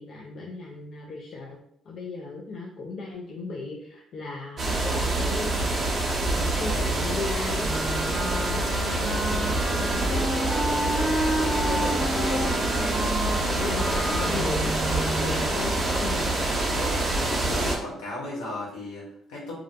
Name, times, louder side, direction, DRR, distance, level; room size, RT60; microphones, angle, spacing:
voice 1, 0.0-1.6 1.9-7.8 8.1-16.4, left 3 dB, 60° left, -2 dB, 0.4 m, -37 dB
sound 1, 4.6-17.8, right 2 dB, 50° right, 0.7 m, -26 dB
Wind instrument woodwind instrument, 7.6-15.5, right 1 dB, ahead, 0.6 m, -31 dB
voice 2, 8.3-8.6 15.5-15.8 17.2-19.5, left 1 dB, 75° left, -5 dB, 0.9 m, -36 dB
2.4 x 2.1 x 2.6 m, 0.70 s
hypercardioid pair, 50°, 0 cm